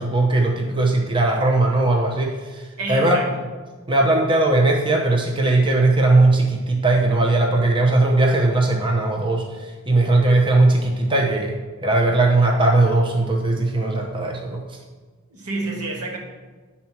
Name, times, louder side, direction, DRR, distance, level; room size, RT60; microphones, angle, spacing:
voice 1, 0.0-3.2 3.9-14.6, right 2 dB, 20° right, 0 dB, 0.8 m, -19 dB
voice 2, 2.8-3.3 15.3-16.2, right 3 dB, 85° right, -1 dB, 1.8 m, -28 dB
9.3 x 4.2 x 5.9 m, 1.4 s
head